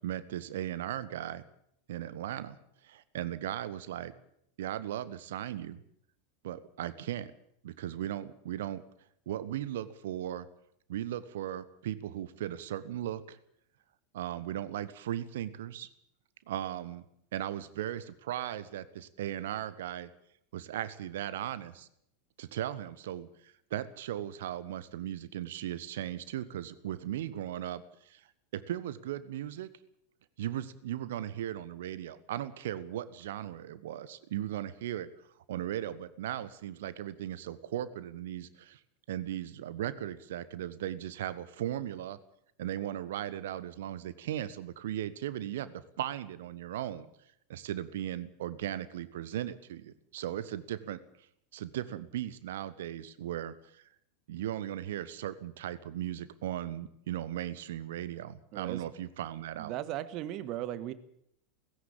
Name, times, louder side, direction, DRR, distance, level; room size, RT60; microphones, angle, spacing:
voice 1, 0.0-1.4 1.9-2.6 2.8-4.1 4.6-5.8 6.4-7.3 7.6-8.8 9.3-10.5 10.9-13.4 14.1-15.9 16.5-17.0 17.3-20.1 20.5-21.9 22.4-28.2 28.5-29.7 30.4-35.1 35.5-38.8 39.1-42.2 42.6-47.1 47.5-51.0 51.5-53.8 54.3-59.7, right 12 dB, 65° right, 15 dB, 1.3 m, -37 dB
voice 2, 58.5-58.9 59.6-60.9, right 13 dB, 45° right, 14 dB, 1.5 m, -37 dB
18.0 x 16.0 x 8.9 m, 0.72 s
figure-of-eight pair, 85°, 0 cm